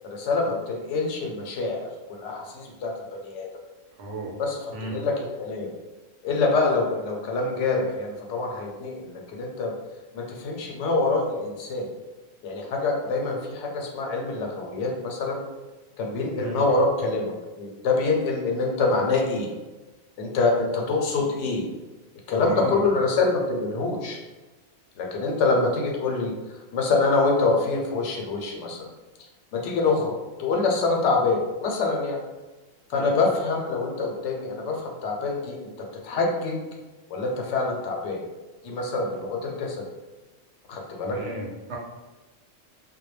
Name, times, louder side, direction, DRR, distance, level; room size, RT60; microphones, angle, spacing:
voice 1, 0.0-2.9 3.2-3.5 4.4-5.7 6.2-9.7 10.1-11.9 12.4-15.4 16.0-19.5 20.2-21.6 22.3-24.2 25.0-26.3 26.7-28.8 29.5-30.1 30.4-32.2 32.9-35.7 36.0-36.6 37.1-38.2 38.6-39.9 40.7-41.2, left 3 dB, 85° left, 1 dB, 0.9 m, -25 dB
voice 2, 4.0-4.3 4.7-5.0 16.3-16.7 22.3-22.9 32.9-33.1 41.0-41.8, right 1 dB, 75° right, -1 dB, 0.9 m, -34 dB
2.2 x 2.1 x 3.1 m, 1.2 s
omnidirectional pair, 1.2 m